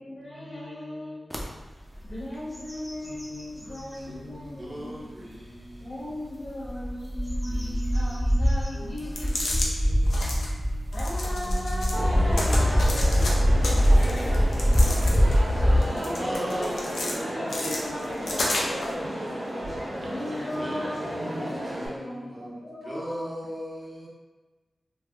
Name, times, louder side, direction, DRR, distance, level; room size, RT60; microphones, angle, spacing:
voice 1, 0.0-1.6 2.0-5.0 5.8-9.5 9.8-10.0 10.9-13.3 15.8-16.7 17.2-18.8 20.0-21.0 21.3-23.3, left 1 dB, 70° left, -8 dB, 1.1 m, -37 dB
sound 1, 1.3-1.4 1.9-2.2 2.5-4.0 4.6-4.7 6.4-15.8, equal, ahead, 0.5 m, -23 dB
voice 2, 3.6-6.1 8.7-11.1 12.8-15.8 16.2-18.3 20.5-24.1, equal, 40° right, -5 dB, 0.9 m, -40 dB
sound 2, 9.0-9.7 10.0-10.5 10.9-12.0 12.3-13.3 13.6-15.4 15.8-17.1 17.5-18.9, left 2 dB, 90° left, 0.4 m, -32 dB
Crowd, 11.9-21.9, equal, 90° right, 0.9 m, -33 dB
voice 3, 18.3-20.1, right 1 dB, 70° right, -5 dB, 0.6 m, -50 dB
3.3 x 2.1 x 2.3 m, 1.2 s
cardioid pair, 50°, 0 cm